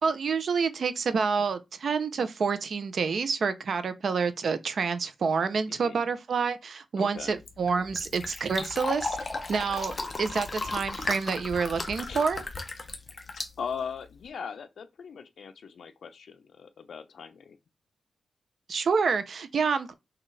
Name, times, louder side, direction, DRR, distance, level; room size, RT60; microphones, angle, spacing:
voice 1, 0.0-9.2 9.5-12.4 18.7-19.9, right 5 dB, 55° right, 0.6 m, -28 dB
voice 2, 5.7-6.0 6.9-7.4 12.1-12.3 13.3-17.6, left 6 dB, 65° left, 0.6 m, -40 dB
Fill (with liquid), 7.2-14.3, left 3 dB, 30° left, 0.7 m, -36 dB
5.8 x 2.4 x 3.2 m
wide cardioid pair, 175°, 0 cm